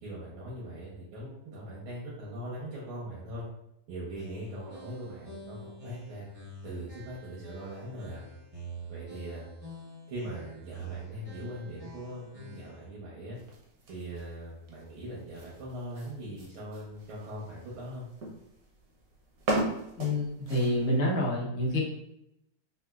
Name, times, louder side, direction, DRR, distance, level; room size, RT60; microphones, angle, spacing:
voice 1, 0.0-3.4 3.9-6.3 6.6-8.2 8.9-9.4 10.1-13.4 13.9-18.1, right 1 dB, 80° right, -5 dB, 1.7 m, -41 dB
sound 1, 4.2-12.9, right 1 dB, 40° right, 0.5 m, -47 dB
sound 2, 13.3-21.0, right 1 dB, 65° right, 0.9 m, -38 dB
voice 2, 20.0-21.8, left 1 dB, 75° left, -4 dB, 0.5 m, -27 dB
4.0 x 2.4 x 2.3 m, 0.81 s
omnidirectional pair, 2.2 m